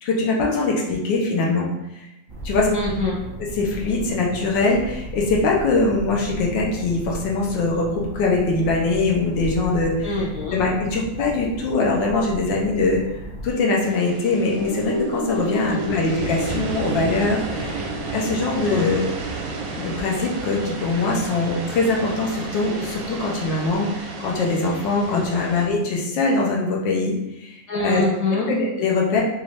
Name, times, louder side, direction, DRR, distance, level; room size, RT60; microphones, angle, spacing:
voice 1, 0.0-1.7 2.4-2.7 3.6-7.9 8.1-10.1 10.5-13.0 13.4-17.8 18.1-19.1 19.8-27.1 27.4-27.5 27.8-28.0 28.5-29.2, left 3 dB, 80° left, -2 dB, 1.5 m, -22 dB
sound 1, 2.3-13.5, right 1 dB, 25° right, 0.5 m, -35 dB
voice 2, 2.7-3.2 10.0-10.6 15.7-16.0 18.6-18.9 25.1-25.2 27.7-28.5, left 2 dB, 60° left, -6 dB, 1.0 m, -25 dB
sound 2, 13.8-25.6, right 3 dB, 65° right, 0.9 m, -33 dB
sound 3, 14.5-23.0 23.3-23.4, right 1 dB, 35° left, 1.2 m, -32 dB
5.4 x 2.6 x 3.2 m, 0.89 s
omnidirectional pair, 2.0 m